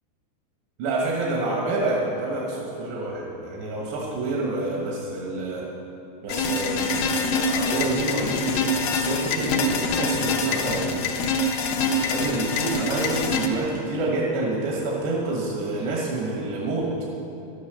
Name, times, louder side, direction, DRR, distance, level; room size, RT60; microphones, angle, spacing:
voice 1, 0.8-5.7 6.2-11.0 11.8-16.9, right 2 dB, 80° right, -2 dB, 3.5 m, -28 dB
sound 1, 6.3-13.5, left 3 dB, 75° left, 2.2 m, -25 dB
12.0 x 9.6 x 6.7 m, 2.8 s
omnidirectional pair, 4.9 m